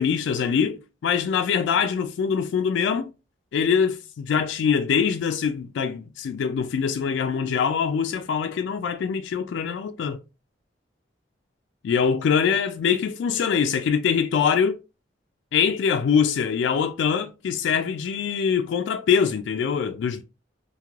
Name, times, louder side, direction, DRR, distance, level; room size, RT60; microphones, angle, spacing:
voice 1, 0.0-3.1 3.5-10.2 11.8-14.8 15.5-20.2, left 6 dB, 80° left, 0.3 m, -23 dB
2.5 x 2.4 x 3.1 m
head